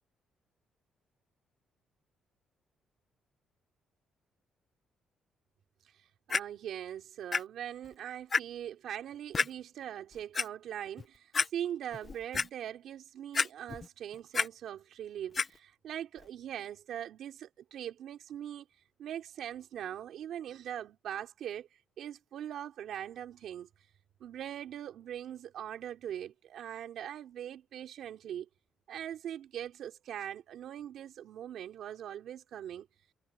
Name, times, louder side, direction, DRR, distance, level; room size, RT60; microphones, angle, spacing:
Clock, 6.3-6.4 7.3-7.4 7.8-7.9 8.3-8.4 9.3-9.5 10.1-10.5 11.0-11.1 11.3-11.5 11.9-12.5 13.3-13.9 14.1-14.5 15.3-15.5 16.2-16.3, left 5 dB, 35° left, 1.0 m, -29 dB
voice 1, 6.3-18.7 19.0-21.7 22.0-23.7 24.2-28.5 28.9-32.9, right 10 dB, 75° right, 3.4 m, -41 dB
cardioid pair, 90°, 0 cm